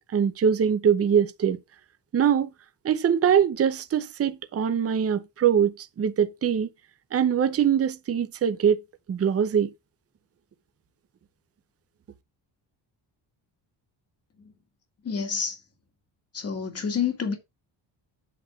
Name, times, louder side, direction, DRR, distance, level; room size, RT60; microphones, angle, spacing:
voice 1, 0.0-1.6 2.1-2.5 2.8-6.7 7.1-8.8 9.1-9.7, right 8 dB, 35° right, 0.7 m, -23 dB
voice 2, 15.0-15.6 16.3-17.3, left 6 dB, 35° left, 2.1 m, -28 dB
8.4 x 4.0 x 5.9 m
wide cardioid pair, 165°, 43 cm